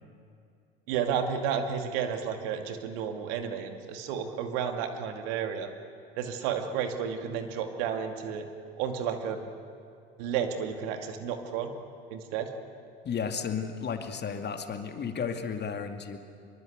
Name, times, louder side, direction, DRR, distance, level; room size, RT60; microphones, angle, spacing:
voice 1, 0.9-5.7 6.1-8.5 8.8-9.4 10.2-11.7 12.1-12.5, right 7 dB, 65° right, 6 dB, 2.4 m, -32 dB
voice 2, 13.0-16.2, left 6 dB, 35° left, 6 dB, 2.4 m, -33 dB
24.5 x 23.0 x 8.1 m, 2.4 s
hypercardioid pair, 70°, 30 cm